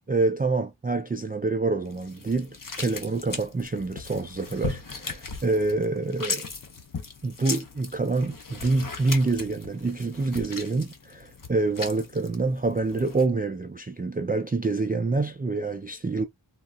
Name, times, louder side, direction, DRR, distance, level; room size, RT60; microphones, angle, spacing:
voice 1, 0.1-6.4 7.2-16.3, right 3 dB, 20° right, 0.3 m, -27 dB
sound 1, 1.9-13.3, left 4 dB, 45° left, 0.8 m, -38 dB
3.8 x 2.1 x 2.3 m
wide cardioid pair, 50°, 48 cm